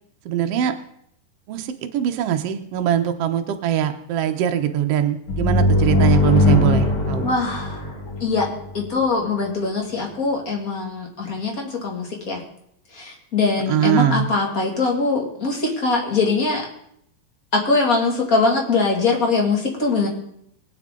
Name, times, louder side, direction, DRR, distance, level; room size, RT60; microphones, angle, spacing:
voice 1, 0.2-0.7 1.5-7.2 13.7-14.3, right 10 dB, 85° right, 6 dB, 1.3 m, -22 dB
sound 1, 5.3-8.9, left 2 dB, 45° left, 2.2 m, -19 dB
voice 2, 7.2-7.8 8.2-8.5 8.7-12.4 13.0-16.6 17.5-20.1, left 3 dB, 30° left, 0 dB, 2.2 m, -22 dB
22.0 x 8.6 x 3.8 m, 0.73 s
omnidirectional pair, 4.2 m